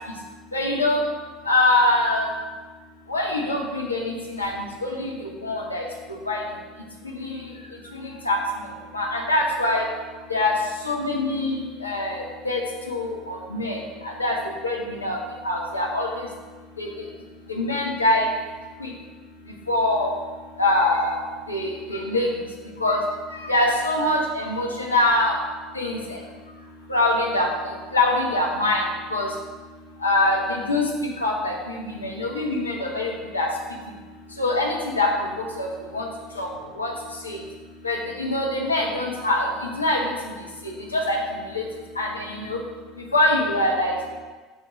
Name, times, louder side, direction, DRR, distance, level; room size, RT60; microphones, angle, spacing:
voice 1, 0.5-1.0 1.5-2.3 3.1-5.1 5.4-5.8 6.3-6.4 7.1-7.4 8.0-8.4 8.9-9.9 10.3-10.5 10.8-12.6 12.9-13.8 14.0-14.4 14.6-15.2 15.4-16.2 16.8-16.9 17.5-18.3 18.8-18.9 19.7-20.1 20.6-21.2 21.5-22.3 22.8-23.0 23.4-25.3 25.7-26.2 26.9-27.5 27.9-28.8 29.1-29.3 30.0-30.8 31.2-31.5 31.8-33.5 34.4-35.1 35.6-35.7 35.9-36.1 36.4-36.5 36.8-36.9 37.2-37.4 37.8-39.5 39.8-40.1 40.9-41.2 41.5-41.6 42.0-42.6 43.1-44.0, left 2 dB, 85° left, -1 dB, 0.9 m, -23 dB
6.0 x 3.9 x 5.1 m, 1.4 s
figure-of-eight pair, 70°, 0 cm